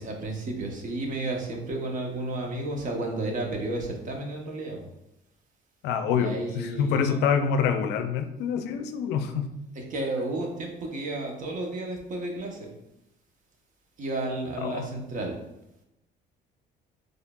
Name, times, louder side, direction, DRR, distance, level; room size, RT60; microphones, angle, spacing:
voice 1, 0.0-4.9 6.2-7.2 9.9-12.6 14.0-15.4, right 2 dB, 50° right, 1 dB, 0.9 m, -32 dB
voice 2, 5.8-9.5 14.6-14.9, left 6 dB, 85° left, 8 dB, 0.4 m, -26 dB
4.5 x 3.1 x 2.3 m, 0.88 s
cardioid pair, 110°, 17 cm